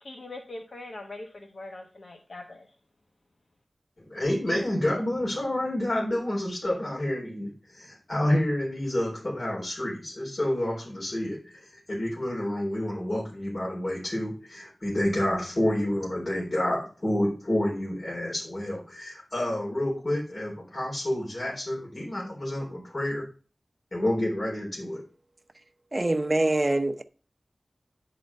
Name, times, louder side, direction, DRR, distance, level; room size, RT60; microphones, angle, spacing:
voice 1, 0.0-2.7, left 2 dB, 75° left, 1.1 m, -42 dB
voice 2, 4.0-23.3 23.9-25.0, left 1 dB, 50° left, 3.8 m, -29 dB
voice 3, 25.9-27.0, right 2 dB, 25° right, 0.8 m, -24 dB
10.5 x 3.9 x 5.3 m
wide cardioid pair, 80°, 0 cm